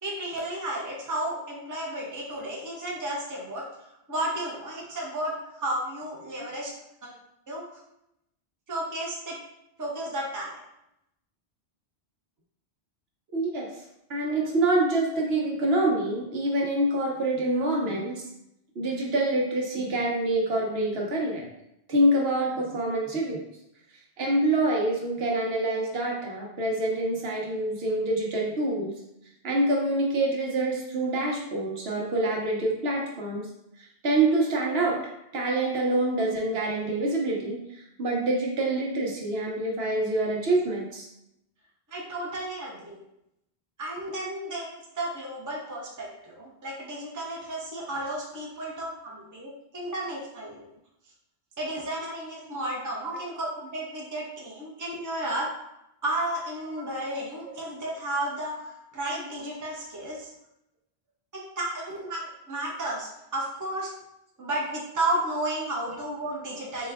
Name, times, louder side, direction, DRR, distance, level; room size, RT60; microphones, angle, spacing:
voice 1, 0.0-6.7 7.0-7.1 7.5-7.6 8.7-9.4 9.8-10.6 41.9-43.0 43.8-50.7 51.6-55.5 56.0-60.3 61.3-63.9 64.4-66.9, right 1 dB, 20° right, -3 dB, 0.7 m, -33 dB
voice 2, 13.3-13.7 14.1-18.2 18.8-21.4 21.9-23.4 24.2-28.9 29.4-33.5 34.0-35.0 35.3-41.0 53.0-53.1, right 2 dB, 70° right, -2 dB, 1.0 m, -26 dB
4.2 x 2.3 x 3.4 m, 0.83 s
omnidirectional pair, 1.1 m